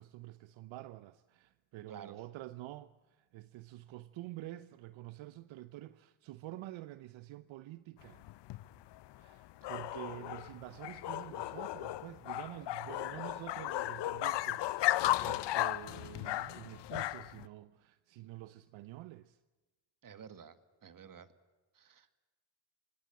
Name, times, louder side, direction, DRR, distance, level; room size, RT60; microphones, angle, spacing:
voice 1, 0.0-8.2 9.2-19.4, right 16 dB, 70° right, 0.9 m, -48 dB
voice 2, 1.9-2.2 9.6-9.7 20.0-20.6 20.8-21.3 21.7-22.2, right 7 dB, 40° right, 2.0 m, -52 dB
sound 1, 8.0-17.5, left 15 dB, 60° left, 0.8 m, -35 dB
25.5 x 19.5 x 7.8 m
supercardioid pair, 75°, 48 cm